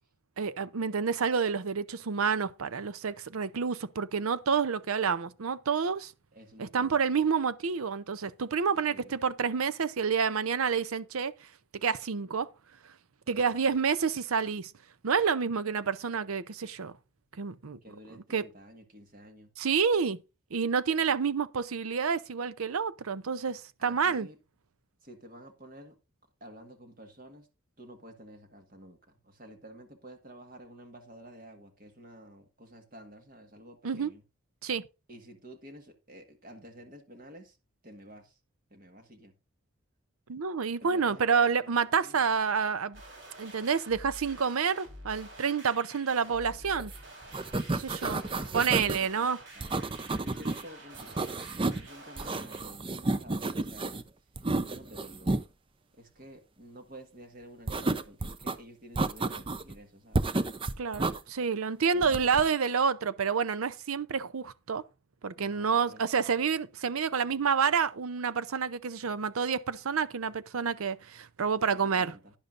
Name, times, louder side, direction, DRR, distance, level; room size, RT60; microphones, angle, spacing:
voice 1, 0.4-6.1 6.6-11.3 11.8-12.5 13.3-14.7 15.0-16.9 17.4-17.8 18.3-18.4 19.6-20.2 20.5-24.3 33.8-34.1 34.6-34.8 40.3-43.0 43.4-46.9 47.7-48.2 48.5-49.4 60.8-64.8 65.2-72.1, right 6 dB, 80° right, 0.6 m, -29 dB
voice 2, 6.3-7.3 8.9-9.2 13.3-13.7 17.8-19.5 23.8-24.4 25.0-26.0 26.4-27.5 27.8-34.2 35.1-37.6 37.8-38.4 38.7-39.3 40.8-42.3 47.5-49.3 49.5-49.7 50.2-54.1 54.7-55.4 56.0-60.3 61.9-62.4 65.3-66.2 71.6-72.3, right 1 dB, 40° right, 1.6 m, -51 dB
sound 1, 42.9-52.7, right 1 dB, 55° right, 3.9 m, -49 dB
sound 2, 46.8-47.0 47.2-49.0 49.6-50.6 50.9-51.9 52.2-54.0 54.4-55.4 57.7-58.5 59.0-59.7 60.1-61.2 62.0-62.4, right 2 dB, 25° right, 0.5 m, -31 dB
12.0 x 10.5 x 2.5 m
head